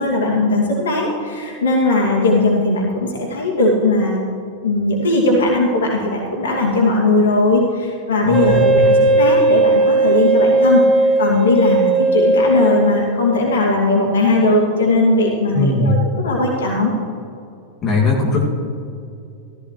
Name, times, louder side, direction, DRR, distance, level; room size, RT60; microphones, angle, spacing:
voice 1, 0.0-4.2 4.6-17.0, left 2 dB, 65° left, -2 dB, 2.4 m, -18 dB
voice 2, 8.3-8.6 9.0-9.1 15.5-16.0 17.8-18.4, left 2 dB, 25° left, -3 dB, 2.3 m, -18 dB
Wind instrument woodwind instrument, 8.3-13.4, right 2 dB, 20° right, 1.5 m, -16 dB
15.0 x 14.5 x 3.2 m, 2.5 s
figure-of-eight pair, 90°, 0 cm